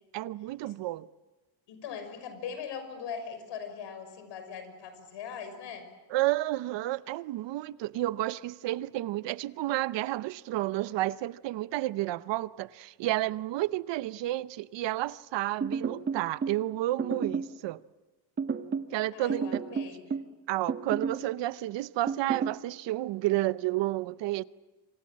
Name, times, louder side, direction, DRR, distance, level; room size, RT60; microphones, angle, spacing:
voice 1, 0.1-1.1 6.1-17.8 18.9-19.6 20.5-24.4, right 16 dB, 85° right, 0.8 m, -31 dB
voice 2, 1.7-5.9 19.1-20.1, left 7 dB, 85° left, 6.1 m, -40 dB
sound 1, 15.6-16.6 17.0-17.6 18.4-18.9 19.3-20.3 20.7-21.2 22.1-22.6, right 5 dB, 30° right, 1.4 m, -31 dB
27.5 x 25.5 x 7.6 m
cardioid pair, 115°, 42 cm